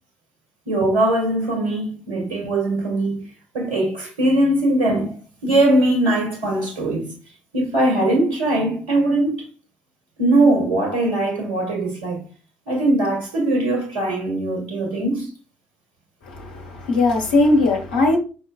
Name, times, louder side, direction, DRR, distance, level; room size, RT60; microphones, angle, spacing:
voice 1, 0.7-3.3 3.5-7.1 7.5-9.4 10.2-12.2 12.7-15.3, right 1 dB, 70° right, 1.6 m, -20 dB
voice 2, 16.2-18.2, left 2 dB, 75° left, 1.1 m, -19 dB
5.3 x 3.2 x 2.4 m
figure-of-eight pair, 45°, 5 cm